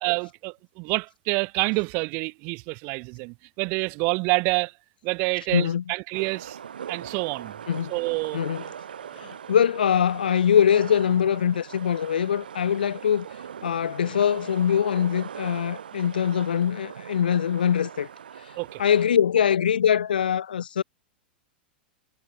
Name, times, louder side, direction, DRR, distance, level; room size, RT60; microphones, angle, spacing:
voice 1, 0.0-4.7 5.0-6.6 6.9-7.5 7.9-8.4 9.0-9.2 18.6-18.8, right 30 dB, 40° right, 0.5 m, -27 dB
voice 2, 5.5-5.8 7.7-7.9 8.3-8.6 9.2-13.3 13.6-18.1 18.8-20.8, left 8 dB, 65° left, 0.9 m, -23 dB
sound 1, 6.1-19.1, right 8 dB, 65° right, 1.4 m, -40 dB
figure-of-eight pair, 95°, 5 cm